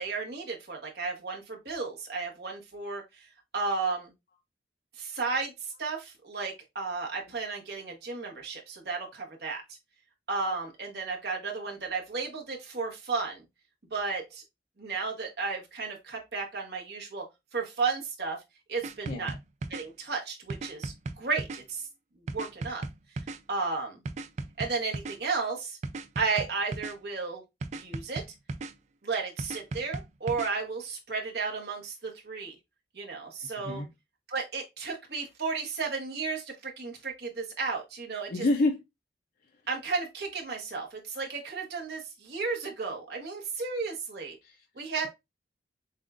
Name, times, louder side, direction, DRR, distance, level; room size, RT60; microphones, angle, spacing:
voice 1, 0.0-4.1 4.9-9.6 10.3-13.4 13.9-14.4 14.8-17.2 17.5-18.4 18.7-19.3 19.7-21.9 22.3-22.8 23.5-24.0 24.6-25.8 26.2-27.4 27.7-28.2 29.0-32.5 32.9-33.8 34.3-38.5 39.7-44.4 44.7-45.1, right 4 dB, 65° right, 1.3 m, -33 dB
sound 1, 18.8-19.8 20.5-21.6 22.3-23.4 24.0-25.2 25.8-26.9 27.6-28.7 29.4-30.5, right 3 dB, 40° right, 0.3 m, -36 dB
voice 2, 19.1-19.4 33.4-33.9 38.3-38.8 44.4-45.1, left 2 dB, 55° left, 0.5 m, -29 dB
7.2 x 2.4 x 2.4 m
head